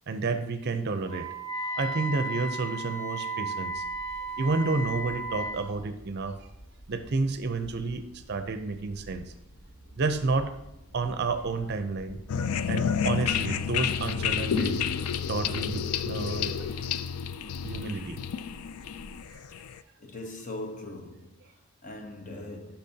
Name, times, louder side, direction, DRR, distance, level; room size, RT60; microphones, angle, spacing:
voice 1, 0.1-1.3 1.5-3.8 4.4-6.5 6.9-9.3 9.9-10.5 10.9-12.2 12.7-14.8 15.3-16.7 17.6-18.2 19.3-19.4, right 3 dB, 50° right, 0.5 m, -30 dB
Wind instrument woodwind instrument, 1.1-5.6, right 2 dB, 20° left, 2.7 m, -34 dB
sound 1, 3.6-19.4, equal, 60° left, 1.1 m, -50 dB
sound 2, 12.3-19.8, left 7 dB, 80° left, 0.4 m, -30 dB
voice 2, 20.0-22.8, left 1 dB, 35° left, 0.7 m, -41 dB
12.0 x 5.8 x 2.8 m
head